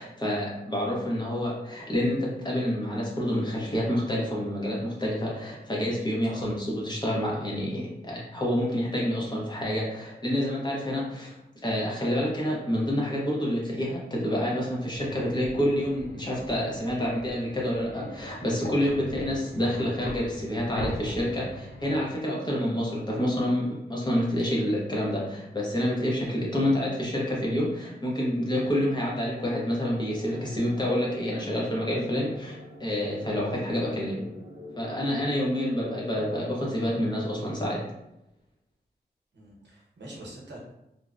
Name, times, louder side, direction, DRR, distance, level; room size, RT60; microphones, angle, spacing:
voice 1, 0.0-11.3 11.6-34.3 34.8-37.9, equal, 25° left, -4 dB, 0.7 m, -28 dB
sound 1, 14.9-21.9, equal, 70° left, 0.7 m, -40 dB
sound 2, 29.9-36.4, equal, 20° right, 1.0 m, -45 dB
voice 2, 39.3-40.6, right 1 dB, 80° right, -4 dB, 0.8 m, -44 dB
2.6 x 2.0 x 2.3 m, 0.89 s
wide cardioid pair, 110°, 18 cm